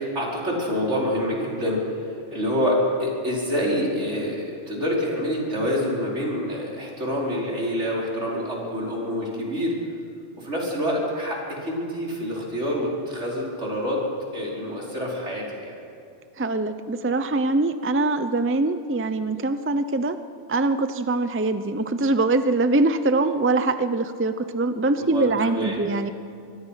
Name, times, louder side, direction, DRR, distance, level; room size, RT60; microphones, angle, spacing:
voice 1, 0.0-9.8 10.4-14.0 14.3-15.7 25.0-25.8, equal, 75° right, -3 dB, 5.3 m, -27 dB
voice 2, 16.4-20.2 20.5-26.1, right 2 dB, 15° right, 10 dB, 0.6 m, -23 dB
26.0 x 23.0 x 5.8 m, 2.5 s
omnidirectional pair, 1.2 m